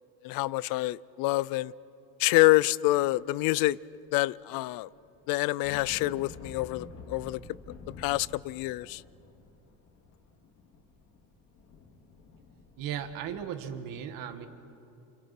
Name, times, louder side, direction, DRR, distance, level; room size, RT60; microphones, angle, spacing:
voice 1, 0.2-1.7 2.2-3.8 4.1-4.9 5.3-7.4 8.0-9.0, left 19 dB, 80° left, 0.6 m, -26 dB
sound 1, 3.9-4.0 4.2-13.8, left 4 dB, 50° left, 3.1 m, -50 dB
voice 2, 12.8-14.5, right 9 dB, 75° right, 1.9 m, -36 dB
29.0 x 29.0 x 6.0 m
cardioid pair, 175°, 34 cm